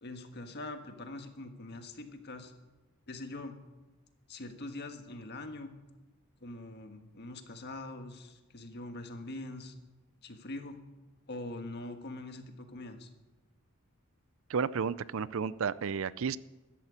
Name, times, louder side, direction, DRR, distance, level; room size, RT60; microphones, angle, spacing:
voice 1, 0.0-2.5 3.1-3.6 4.3-5.7 6.4-9.7 10.2-10.8 11.3-13.1, left 2 dB, 50° left, 6 dB, 1.6 m, -43 dB
voice 2, 14.5-16.4, right 6 dB, 65° right, 18 dB, 0.5 m, -32 dB
13.5 x 11.0 x 8.3 m, 1.1 s
head